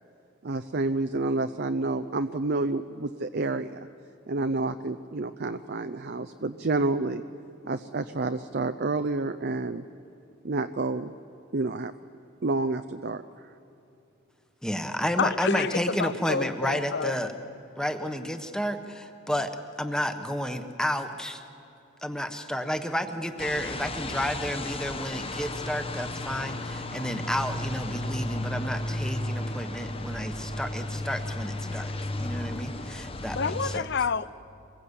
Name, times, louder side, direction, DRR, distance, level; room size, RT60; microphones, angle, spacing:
voice 1, 0.4-3.8 4.3-7.2 7.6-9.8 10.4-11.1 11.5-11.9 12.4-13.5, right 3 dB, 55° right, 10 dB, 0.6 m, -29 dB
voice 2, 14.6-17.3 17.8-19.5 19.8-21.4 22.0-31.9 32.2-33.9, equal, 5° left, 7 dB, 1.2 m, -31 dB
voice 3, 15.2-17.5 18.0-18.1 33.3-34.3, left 5 dB, 60° left, 17 dB, 0.6 m, -29 dB
sound 1, 23.4-33.8, left 1 dB, 30° left, 1.1 m, -34 dB
24.5 x 21.5 x 8.3 m, 2.7 s
head